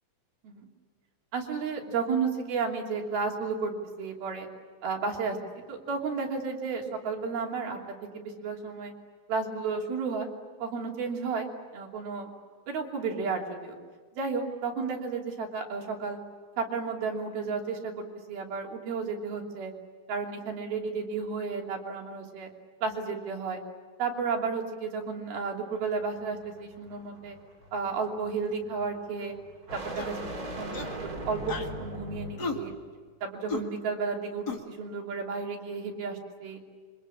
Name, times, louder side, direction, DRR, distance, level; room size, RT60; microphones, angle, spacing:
voice 1, 1.3-3.7 4.0-4.5 4.8-7.8 8.1-8.9 9.3-10.3 10.6-12.3 12.7-13.7 14.1-16.2 16.6-19.7 20.1-22.5 22.8-23.6 24.0-27.4 27.7-29.3 29.7-32.7 33.2-36.6, right 5 dB, 80° right, 1 dB, 5.0 m, -32 dB
sound 1, 25.8-32.9, right 1 dB, 25° right, 2.7 m, -41 dB
sound 2, 29.9-30.2 30.7-31.0 31.5-31.7 32.4-32.6 33.5-33.6 34.5-34.6, left 4 dB, 35° left, 2.0 m, -34 dB
27.0 x 25.0 x 8.6 m, 1.5 s
omnidirectional pair, 4.3 m